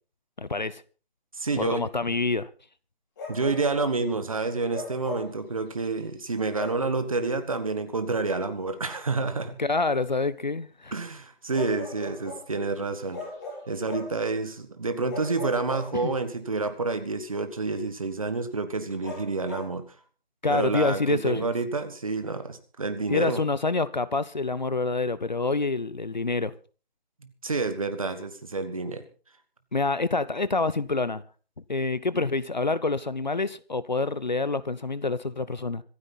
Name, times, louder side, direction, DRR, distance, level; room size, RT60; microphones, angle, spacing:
voice 1, 0.4-0.8 1.6-2.5 9.6-11.0 16.0-16.1 20.4-21.5 23.1-26.5 29.7-31.2 31.7-35.8, left 3 dB, 45° left, 0.7 m, -27 dB
voice 2, 1.3-1.9 3.3-9.6 10.9-13.2 13.7-19.8 20.5-23.4 27.2-29.0, right 3 dB, 35° right, 1.7 m, -29 dB
Bark, 3.2-3.9 4.7-5.4 6.5-6.9 8.6-8.7 11.5-12.5 13.1-14.2 15.1-16.3 19.0-19.7, left 2 dB, 20° left, 4.9 m, -38 dB
25.5 x 9.8 x 4.1 m
figure-of-eight pair, 170°, 30 cm